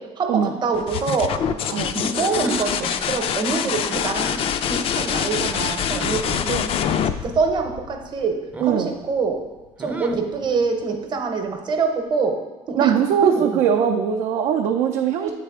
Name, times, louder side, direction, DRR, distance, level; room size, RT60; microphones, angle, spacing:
voice 1, 0.0-4.4 4.6-6.7 7.2-9.5 9.8-13.6 15.2-15.3, right 4 dB, 40° right, 5 dB, 0.8 m, -25 dB
sound 1, 0.7-8.3 10.1-10.7, left 8 dB, 50° left, 0.3 m, -25 dB
sound 2, 2.2-3.0 4.1-4.6 5.9-6.4 8.5-8.9 9.8-10.3, right 3 dB, 10° right, 0.5 m, -34 dB
voice 2, 8.6-9.0 12.8-15.3, right 8 dB, 75° right, 2 dB, 0.4 m, -21 dB
8.1 x 3.3 x 3.5 m, 1.2 s
cardioid pair, 110°, 12 cm